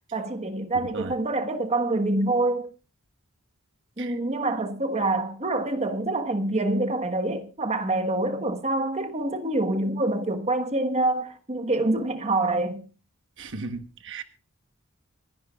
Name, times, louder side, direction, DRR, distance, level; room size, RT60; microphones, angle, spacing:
voice 1, 0.1-2.7 4.0-12.9, right 2 dB, 30° right, 1.2 m, -26 dB
voice 2, 13.4-14.2, right 3 dB, 60° right, 1.1 m, -36 dB
26.0 x 10.5 x 2.3 m
head